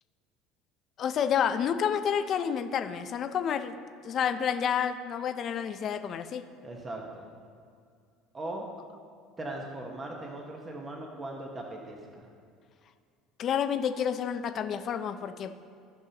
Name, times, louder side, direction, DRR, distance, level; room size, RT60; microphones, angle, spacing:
voice 1, 1.0-3.8 4.0-6.4 13.4-15.6, left 8 dB, 45° left, 8 dB, 0.5 m, -29 dB
voice 2, 6.6-7.4 8.3-8.7 9.4-12.3, right 2 dB, 25° right, 0 dB, 1.1 m, -39 dB
15.5 x 5.5 x 2.9 m, 2.2 s
supercardioid pair, 120°, 0 cm